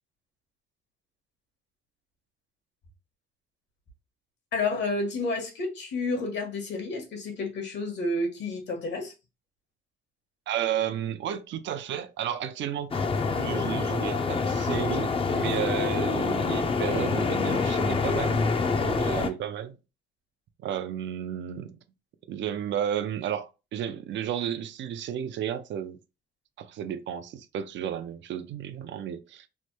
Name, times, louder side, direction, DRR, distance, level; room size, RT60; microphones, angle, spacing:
voice 1, 4.5-9.1, left 3 dB, 65° left, 1.2 m, -30 dB
voice 2, 10.5-13.0 13.3-18.4 18.8-19.8 20.6-21.8 22.3-26.0 26.6-29.5, right 9 dB, 65° right, 0.5 m, -32 dB
sound 1, 12.9-19.3, left 4 dB, 30° left, 0.5 m, -26 dB
3.2 x 2.1 x 3.1 m
cardioid pair, 90°, 20 cm